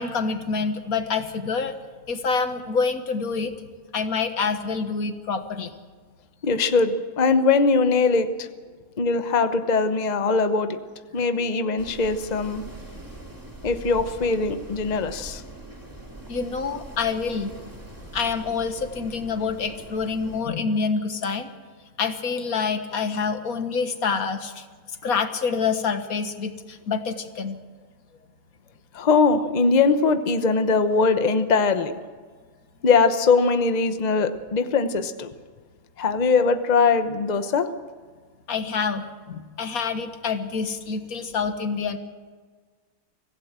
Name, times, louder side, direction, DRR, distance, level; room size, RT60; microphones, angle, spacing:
voice 1, 0.0-1.8 2.1-3.5 3.9-5.7 16.3-17.5 18.1-21.5 22.0-24.7 25.0-27.6 38.5-42.0, left 5 dB, 80° left, 8 dB, 1.9 m, -27 dB
voice 2, 6.4-8.5 9.0-10.8 11.1-12.6 13.6-15.4 28.9-32.0 32.8-35.3 36.0-37.7, left 4 dB, 35° left, 9 dB, 1.0 m, -21 dB
Wind, 11.8-20.4, right 1 dB, 15° right, 2.4 m, -42 dB
25.0 x 16.0 x 7.5 m, 1.5 s
omnidirectional pair, 1.5 m